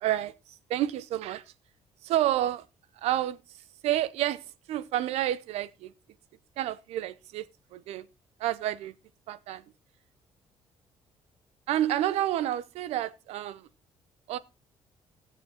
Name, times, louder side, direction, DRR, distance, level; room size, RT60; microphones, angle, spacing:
voice 1, 0.0-1.5 2.0-2.7 3.0-5.9 6.6-8.1 8.4-9.0 9.3-9.6 11.7-13.7 14.3-14.4, right 13 dB, 90° right, 0.8 m, -30 dB
15.0 x 7.2 x 4.2 m
cardioid pair, 115°, 10 cm